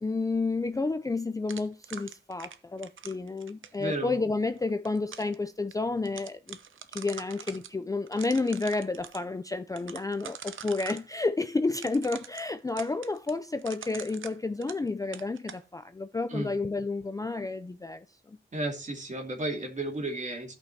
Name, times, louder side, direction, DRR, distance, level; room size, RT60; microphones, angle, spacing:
voice 1, 0.0-6.6 6.9-18.4, left 3 dB, 15° left, 0.4 m, -31 dB
sound 1, 1.5-3.8 4.6-5.3 5.7-5.8 6.0-7.7 8.1-9.2 9.8-11.0 11.7-14.9 15.1-15.6, right 7 dB, 85° right, 0.8 m, -44 dB
voice 2, 3.8-4.2 16.3-16.5 18.5-20.5, right 2 dB, 35° right, 2.5 m, -33 dB
16.5 x 5.7 x 2.7 m
wide cardioid pair, 125°, 20 cm